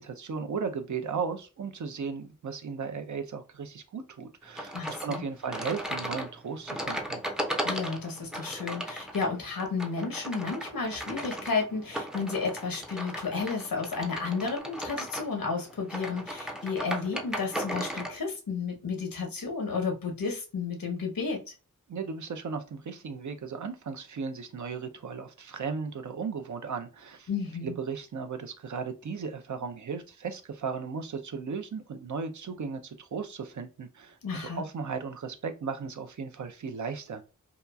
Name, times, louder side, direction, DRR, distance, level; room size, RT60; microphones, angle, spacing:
voice 1, 0.0-7.2 21.9-27.3 27.6-37.2, right 5 dB, 60° right, 0.5 m, -36 dB
sound 1, 4.5-18.2, equal, ahead, 0.5 m, -36 dB
voice 2, 4.7-5.2 7.6-21.5 27.3-27.7 34.2-34.6, left 4 dB, 85° left, 0.9 m, -32 dB
2.9 x 2.3 x 2.3 m
wide cardioid pair, 60°, 33 cm